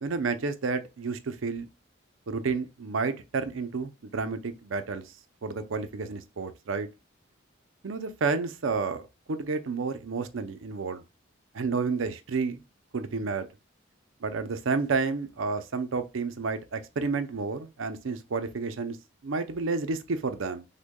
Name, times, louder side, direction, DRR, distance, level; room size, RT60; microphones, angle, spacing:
voice 1, 0.0-1.7 2.3-5.1 5.4-6.9 7.8-9.0 9.3-11.0 11.5-12.6 12.9-13.5 14.2-19.0 19.2-20.7, right 4 dB, 80° right, 0.5 m, -30 dB
6.2 x 2.2 x 2.2 m
head